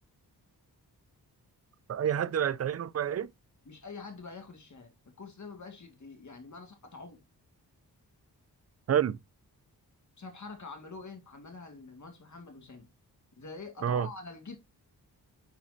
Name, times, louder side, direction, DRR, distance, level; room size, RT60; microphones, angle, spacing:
voice 1, 1.9-3.3 8.9-9.2 13.8-14.1, right 9 dB, 40° right, 0.4 m, -28 dB
voice 2, 3.7-7.2 10.2-12.9 13.4-14.6, left 4 dB, 45° left, 2.1 m, -46 dB
9.1 x 4.2 x 2.6 m
cardioid pair, 75°, 39 cm